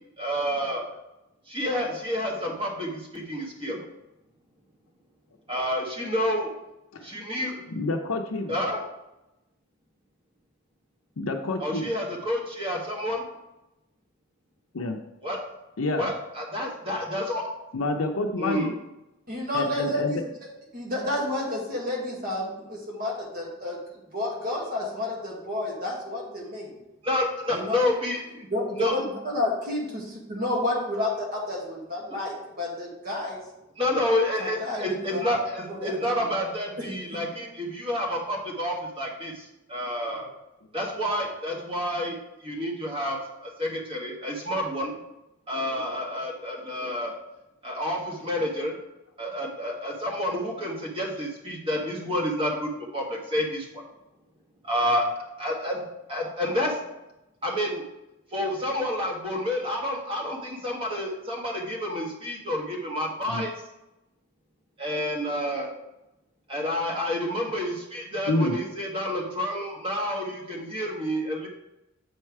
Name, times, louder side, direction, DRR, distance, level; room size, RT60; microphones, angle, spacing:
voice 1, 0.2-0.8 1.5-3.8 5.5-6.5 7.0-7.6 8.5-8.8 11.6-13.2 15.2-15.4 16.0-17.4 18.4-18.7 27.0-28.2 28.8-29.0 33.8-40.3 40.7-44.9 45.5-47.1 47.6-48.8 49.2-53.7 54.6-55.1 55.4-55.8 56.1-56.8 57.4-57.8 58.3-63.5 64.8-65.7 66.5-71.5, left 1 dB, 25° right, 0 dB, 1.4 m, -29 dB
voice 2, 7.7-8.6 11.2-11.9 14.7-15.0 15.8-16.1 17.7-18.7 19.5-20.1 63.3-63.5 68.3-68.6, left 2 dB, 75° left, 3 dB, 0.6 m, -28 dB
voice 3, 19.3-20.2 20.7-23.8 24.1-26.7 27.5-27.9 28.5-33.4 34.4-35.2 35.7-36.1, left 1 dB, 45° right, -2 dB, 1.8 m, -30 dB
8.0 x 4.4 x 4.7 m, 0.93 s
head